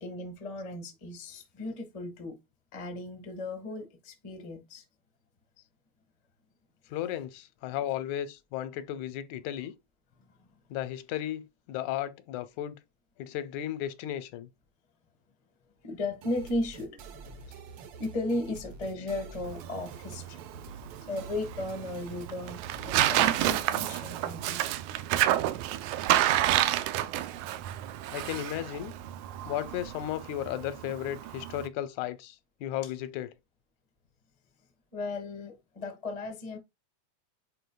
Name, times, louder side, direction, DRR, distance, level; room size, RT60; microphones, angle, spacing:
voice 1, 0.0-2.4 2.7-4.8 10.3-10.5 15.8-24.7 34.9-36.6, left 2 dB, 30° left, 0.6 m, -36 dB
voice 2, 6.9-9.7 10.7-12.8 13.2-14.5 28.1-28.9 29.5-32.4 32.6-33.3, left 12 dB, 90° left, 2.1 m, -34 dB
sound 1, 16.2-24.6, right 5 dB, 60° right, 1.6 m, -47 dB
Tearing, 19.4-31.7, right 13 dB, 85° right, 2.0 m, -30 dB
9.2 x 4.5 x 2.3 m
omnidirectional pair, 3.3 m